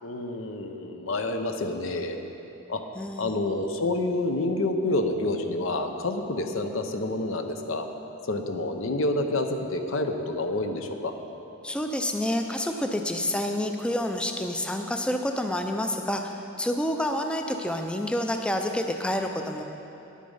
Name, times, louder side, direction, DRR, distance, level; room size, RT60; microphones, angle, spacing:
voice 1, 0.0-2.2 2.7-2.8 3.2-7.9 8.3-11.2, left 2 dB, 80° left, 6 dB, 0.8 m, -28 dB
voice 2, 3.0-3.3 11.6-19.6, left 1 dB, 5° left, 4 dB, 0.4 m, -28 dB
10.5 x 8.4 x 5.5 m, 3.0 s
head